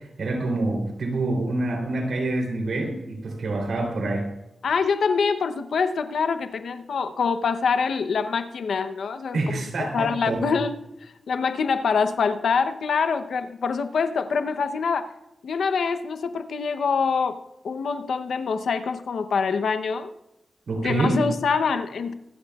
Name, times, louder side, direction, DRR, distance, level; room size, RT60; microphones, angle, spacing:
voice 1, 0.2-4.3 9.3-10.4 20.7-21.2, right 2 dB, 90° right, 1 dB, 3.3 m, -26 dB
voice 2, 4.6-9.6 9.9-15.1 15.4-17.4 17.6-20.1 20.8-22.1, left 5 dB, 85° left, 9 dB, 0.8 m, -25 dB
25.0 x 11.5 x 2.4 m, 0.89 s
wide cardioid pair, 80°, 0 cm